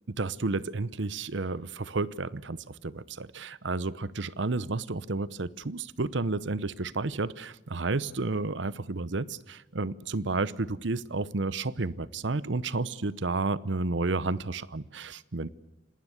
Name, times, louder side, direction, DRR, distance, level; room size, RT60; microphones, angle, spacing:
voice 1, 0.2-15.5, right 3 dB, 65° right, 19 dB, 0.8 m, -31 dB
27.0 x 19.5 x 8.1 m, 0.97 s
head